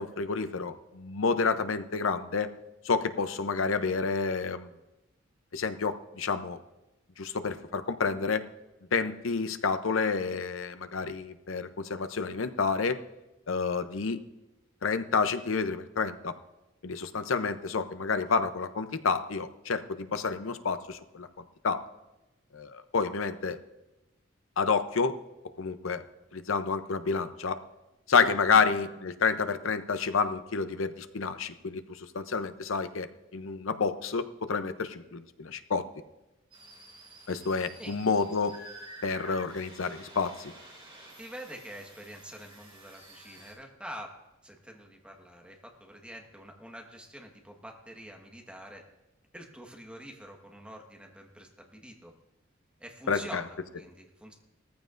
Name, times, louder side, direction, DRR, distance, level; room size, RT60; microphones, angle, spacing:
voice 1, 0.0-2.5 2.8-4.7 5.5-6.6 7.2-8.4 8.9-13.0 13.5-14.2 14.8-16.3 16.8-21.3 21.6-21.8 22.5-23.6 24.6-25.2 25.6-26.0 26.3-27.6 28.1-35.8 37.3-38.5 39.0-40.5 53.1-53.4, left 5 dB, 80° left, 10 dB, 0.7 m, -29 dB
sound 1, 36.5-43.5, right 1 dB, 30° right, 4.5 m, -50 dB
voice 2, 41.2-44.1 44.4-48.8 49.3-52.1 52.8-54.3, equal, 5° right, 1 dB, 1.4 m, -46 dB
18.5 x 14.0 x 2.6 m, 0.99 s
head